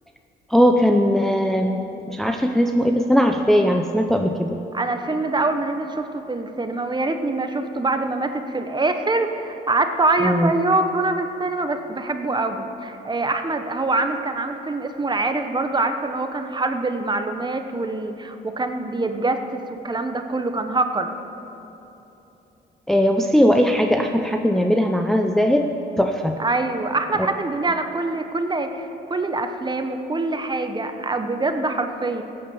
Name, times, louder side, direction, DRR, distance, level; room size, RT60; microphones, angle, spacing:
voice 1, 0.5-4.6 10.2-10.5 22.9-25.7 26.0-26.4, equal, ahead, 3 dB, 0.7 m, -19 dB
voice 2, 4.7-21.1 26.4-32.2, right 2 dB, 20° right, 7 dB, 1.0 m, -24 dB
16.0 x 8.8 x 7.1 m, 3.0 s
cardioid pair, 90°, 20 cm